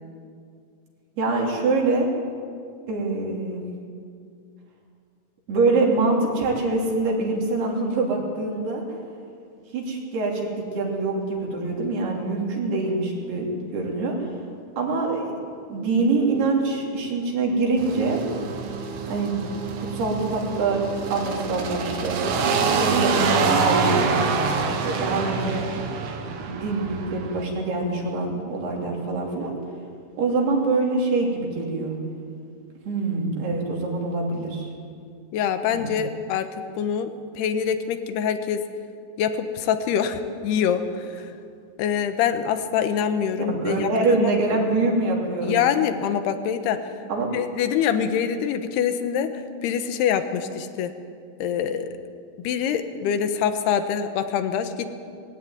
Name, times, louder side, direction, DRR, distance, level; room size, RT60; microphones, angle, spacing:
voice 1, 1.2-2.1 2.9-3.7 5.5-8.8 9.7-14.2 14.8-15.3 15.7-18.2 19.1-19.4 19.8-20.8 21.1-22.2 22.6-25.6 26.5-29.5 30.2-32.0 32.9-34.7 35.7-35.9 43.4-45.6 47.1-47.3, right 3 dB, 65° right, -1 dB, 4.9 m, -24 dB
sound 1, 17.8-27.4, right 5 dB, 90° right, 4.1 m, -26 dB
voice 2, 35.3-38.6 39.2-41.3 41.8-44.3 45.4-46.9 47.3-50.9 51.4-51.9 52.4-54.9, left 8 dB, 75° left, 9 dB, 3.0 m, -25 dB
20.0 x 16.5 x 9.4 m, 2.3 s
omnidirectional pair, 5.1 m